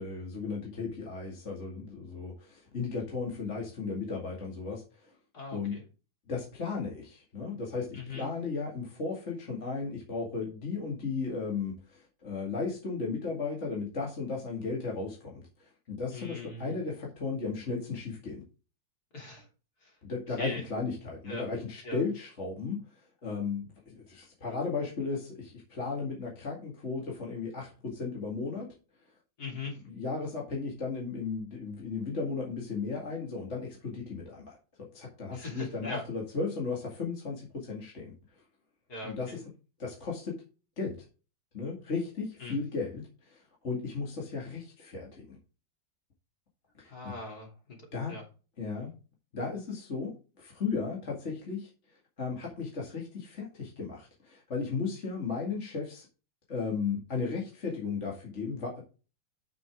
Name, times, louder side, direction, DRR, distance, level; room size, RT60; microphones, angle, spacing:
voice 1, 0.0-5.1 5.5-5.8 6.3-18.4 20.0-22.8 23.2-28.7 29.8-38.1 39.0-39.4 39.8-40.4 40.8-41.0 41.5-45.4 46.8-46.9 47.9-48.1 48.6-48.9 49.3-51.7 52.2-56.1 56.5-58.8, left 4 dB, 40° left, -2 dB, 2.3 m, -35 dB
voice 2, 5.3-5.8 7.9-8.3 16.1-16.8 19.1-19.5 19.8-19.9 20.4-20.6 21.3-21.4 21.8-22.0 29.4-29.8 35.3-36.0 38.9-39.4 42.4-42.6 46.9-47.5 48.1-48.2, left 3 dB, 55° left, 0 dB, 3.7 m, -40 dB
9.3 x 6.5 x 3.6 m, 0.34 s
omnidirectional pair, 2.0 m